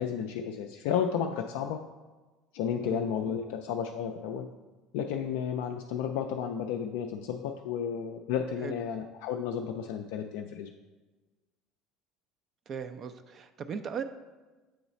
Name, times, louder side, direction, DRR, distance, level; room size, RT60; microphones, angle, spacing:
voice 1, 0.0-1.8 2.5-4.5 4.9-10.7, left 8 dB, 70° left, 3 dB, 0.3 m, -32 dB
voice 2, 12.7-14.0, right 7 dB, 45° right, 8 dB, 0.3 m, -38 dB
7.7 x 3.1 x 4.1 m, 1.2 s
hypercardioid pair, 65°, 0 cm